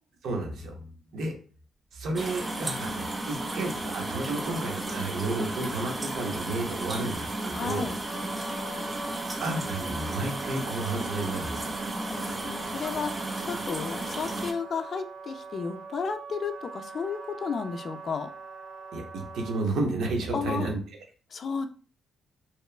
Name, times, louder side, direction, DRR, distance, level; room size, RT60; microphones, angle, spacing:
voice 1, 0.2-0.9 1.1-1.3 1.9-7.9 9.4-11.8 18.9-20.8, right 2 dB, 70° right, 3 dB, 0.7 m, -32 dB
sound 1, 2.2-14.5, right 2 dB, 20° right, 0.4 m, -34 dB
voice 2, 7.5-8.0 12.1-18.3 20.3-20.7 21.3-21.7, left 5 dB, 50° left, 8 dB, 0.3 m, -33 dB
Wind instrument woodwind instrument, 8.0-19.6, right 3 dB, 40° right, 1.0 m, -43 dB
2.9 x 2.1 x 2.4 m, 0.39 s
cardioid pair, 90°, 0 cm